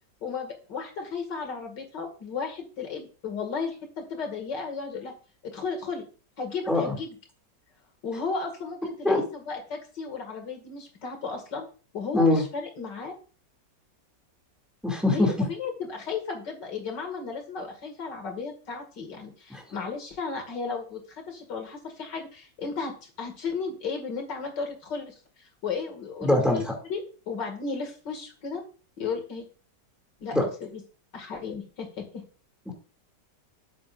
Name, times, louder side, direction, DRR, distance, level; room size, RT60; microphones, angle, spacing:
voice 1, 0.2-5.1 5.4-6.1 6.4-7.1 8.0-11.6 11.9-13.1 15.0-21.0 21.3-26.6 26.9-28.6 29.0-29.5 30.2-30.8 31.1-32.2, left 5 dB, 80° left, 3 dB, 2.8 m, -34 dB
voice 2, 14.8-15.3 19.5-19.6 26.2-26.7 30.3-30.5 32.7-32.8, left 2 dB, ahead, 1 dB, 2.4 m, -22 dB
12.0 x 8.6 x 2.5 m, 0.37 s
omnidirectional pair, 1.9 m